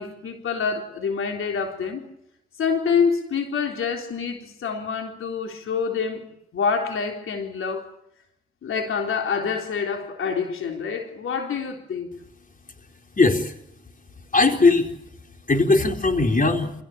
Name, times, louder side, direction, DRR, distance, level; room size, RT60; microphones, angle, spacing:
voice 1, 0.0-2.0 2.6-6.2 6.5-7.9 8.6-12.1, left 6 dB, 85° left, 3.8 m, -26 dB
voice 2, 13.2-13.5 14.3-14.9 15.5-16.7, left 3 dB, 40° left, 4.3 m, -19 dB
26.5 x 17.5 x 8.6 m
cardioid pair, 55°, 21 cm